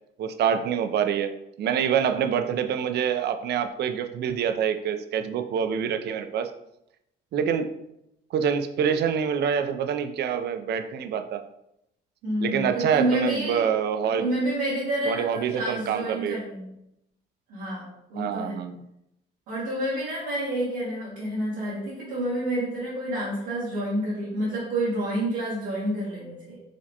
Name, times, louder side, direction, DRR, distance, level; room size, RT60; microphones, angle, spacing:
voice 1, 0.2-6.5 7.3-7.7 8.3-11.4 12.4-14.3 15.1-16.4 18.2-18.7, right 7 dB, 55° right, 8 dB, 0.4 m, -26 dB
voice 2, 12.2-13.6 14.2-16.7 17.5-18.6 19.5-26.6, right 1 dB, 85° right, -9 dB, 1.1 m, -29 dB
4.8 x 2.1 x 2.8 m, 0.81 s
supercardioid pair, 70°, 21 cm